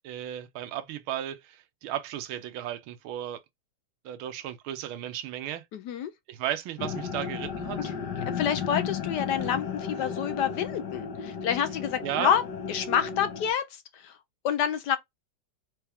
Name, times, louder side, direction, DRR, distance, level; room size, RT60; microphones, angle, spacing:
voice 1, 0.0-3.4 4.0-5.6 6.3-7.9 9.4-9.5 12.0-12.3, right 11 dB, 80° right, 1.4 m, -34 dB
voice 2, 5.7-6.1 7.8-7.9 8.4-12.4 12.7-14.2 14.4-15.0, left 9 dB, 70° left, 1.0 m, -28 dB
sound 1, 6.8-13.5, left 6 dB, 55° left, 1.7 m, -34 dB
4.7 x 3.4 x 3.4 m
omnidirectional pair, 2.3 m